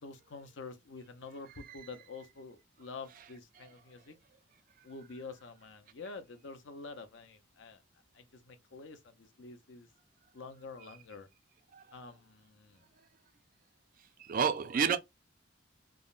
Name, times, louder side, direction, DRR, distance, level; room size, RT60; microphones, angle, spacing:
voice 1, 0.0-4.2 4.8-7.8 8.1-9.9 10.3-11.3 11.9-12.8, left 4 dB, 60° left, 0.5 m, -48 dB
voice 2, 14.2-15.0, right 7 dB, 40° right, 0.3 m, -30 dB
3.5 x 2.0 x 2.4 m
head